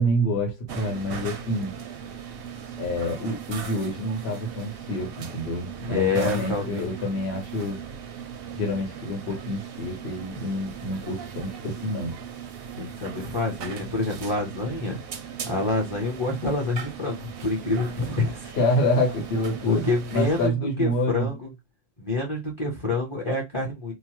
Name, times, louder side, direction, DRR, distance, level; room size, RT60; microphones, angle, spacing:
voice 1, 0.0-1.7 2.8-7.8 8.5-12.2 18.5-21.3, equal, 60° left, 1.3 m, -27 dB
sound 1, 0.7-20.5, right 7 dB, 65° right, 0.7 m, -38 dB
voice 2, 5.9-6.9 12.8-15.0 15.5-18.5 19.6-21.4 22.0-23.9, left 3 dB, 30° left, 0.7 m, -27 dB
2.8 x 2.2 x 3.0 m
omnidirectional pair, 1.2 m